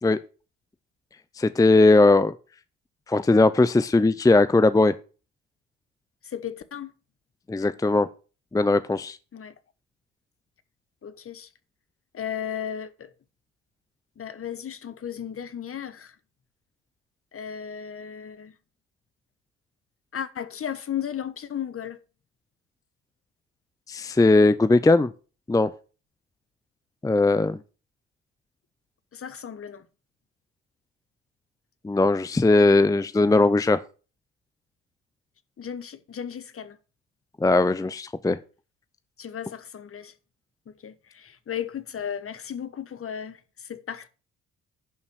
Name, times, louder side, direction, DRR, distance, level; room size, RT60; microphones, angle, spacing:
voice 1, 1.4-2.3 3.1-4.9 7.5-8.1 8.5-9.2 23.9-25.1 25.5-25.7 27.0-27.6 31.8-33.8 37.4-38.4, left 2 dB, 10° left, 0.6 m, -19 dB
voice 2, 6.2-6.9 9.3-9.5 11.0-11.5 12.1-13.1 14.2-16.1 17.3-18.5 20.1-22.0 29.1-29.9 35.6-36.8 39.2-40.1 40.7-44.1, left 9 dB, 40° left, 1.4 m, -35 dB
11.0 x 5.6 x 6.3 m
hypercardioid pair, 60°, 35 cm